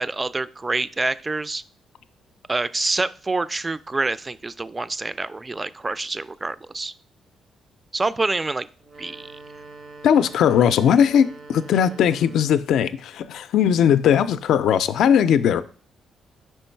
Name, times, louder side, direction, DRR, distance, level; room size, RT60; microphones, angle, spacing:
voice 1, 0.0-1.6 2.5-6.9 7.9-8.7 9.0-9.3, right 3 dB, 20° right, 0.3 m, -26 dB
sound 1, 8.8-12.8, right 3 dB, 55° right, 0.6 m, -44 dB
voice 2, 10.0-15.6, left 8 dB, 75° left, 0.3 m, -19 dB
5.2 x 4.5 x 4.4 m
cardioid pair, 90°, 0 cm